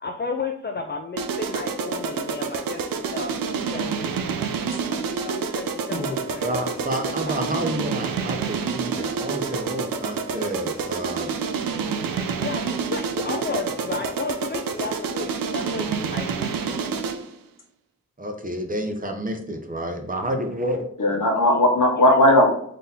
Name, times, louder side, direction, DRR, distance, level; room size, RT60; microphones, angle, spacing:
voice 1, 0.0-2.8 3.1-4.2 4.9-7.4 12.4-16.9 22.0-22.2, left 4 dB, 30° left, 4 dB, 0.4 m, -33 dB
sound 1, 1.2-17.3, right 5 dB, 85° right, 0.5 m, -28 dB
voice 2, 6.4-11.3 18.2-20.9, right 1 dB, 25° right, 4 dB, 0.8 m, -29 dB
voice 3, 21.0-22.5, left 1 dB, 70° left, 0 dB, 1.0 m, -17 dB
3.9 x 2.8 x 3.6 m, 0.67 s
wide cardioid pair, 65°, 34 cm